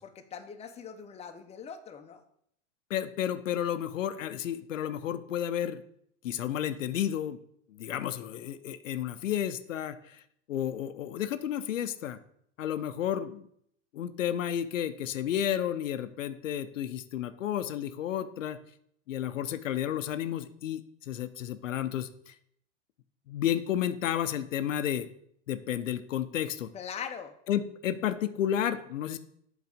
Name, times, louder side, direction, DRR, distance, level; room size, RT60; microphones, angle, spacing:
voice 1, 0.0-2.2 26.7-27.4, left 7 dB, 15° left, 6 dB, 0.7 m, -41 dB
voice 2, 2.9-5.8 6.2-7.4 7.7-10.2 10.5-12.2 12.6-13.5 13.9-18.6 19.1-22.3 23.3-25.1 25.5-26.7 27.5-29.2, left 10 dB, 80° left, 11 dB, 0.6 m, -32 dB
8.1 x 4.1 x 5.0 m, 0.68 s
hypercardioid pair, 95°, 38 cm